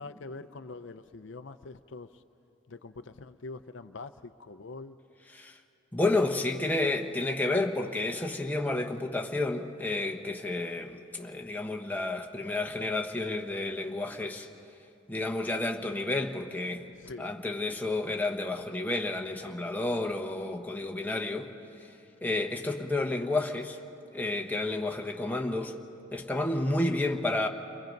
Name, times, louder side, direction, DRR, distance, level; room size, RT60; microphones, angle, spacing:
voice 1, 0.0-2.1 2.7-5.0 17.0-17.3, left 3 dB, 70° left, 11 dB, 0.6 m, -44 dB
voice 2, 5.9-14.5 15.1-16.8 17.2-21.5 22.2-23.8 24.1-25.7 26.1-27.5, left 2 dB, 10° left, 2 dB, 1.0 m, -30 dB
29.5 x 22.5 x 5.3 m, 2.7 s
head